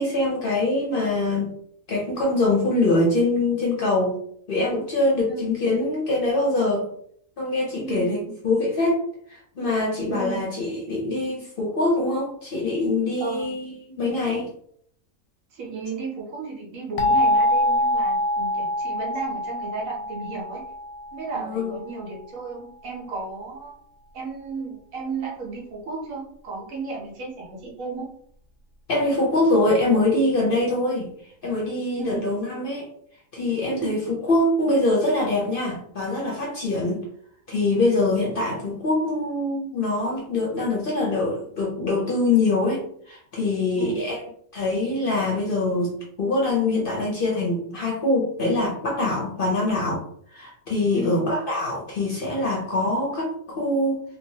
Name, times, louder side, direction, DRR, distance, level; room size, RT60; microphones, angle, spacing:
voice 1, 0.0-1.5 1.9-4.2 4.5-6.9 7.4-8.2 8.4-14.5 21.3-21.7 28.9-31.1 31.4-32.9 33.3-34.0 34.3-37.0 37.5-44.2 44.5-50.0 50.3-54.0, left 2 dB, 55° left, -3 dB, 0.7 m, -24 dB
voice 2, 7.8-8.1 10.1-10.4 13.2-13.5 15.5-20.6 21.1-23.7 24.1-28.1 32.0-32.2 33.7-34.0 43.8-44.0 50.9-51.1, right 4 dB, 75° right, -2 dB, 1.2 m, -34 dB
sound 1, 17.0-21.7, left 1 dB, 85° left, 1.0 m, -24 dB
3.0 x 2.2 x 2.7 m, 0.65 s
omnidirectional pair, 1.4 m